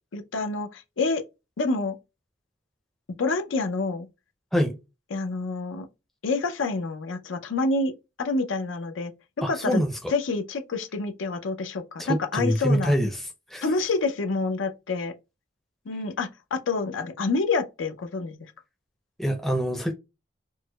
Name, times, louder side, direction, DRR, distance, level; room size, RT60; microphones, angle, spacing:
voice 1, 0.1-1.2 1.6-2.0 3.2-4.1 5.1-5.9 6.2-9.1 9.5-9.8 10.1-12.9 13.6-15.1 15.9-18.4, left 3 dB, 85° left, 0.6 m, -27 dB
voice 2, 9.4-10.1 12.0-13.1 13.5-13.6 19.2-19.9, equal, ahead, 0.5 m, -25 dB
4.6 x 2.1 x 2.2 m
head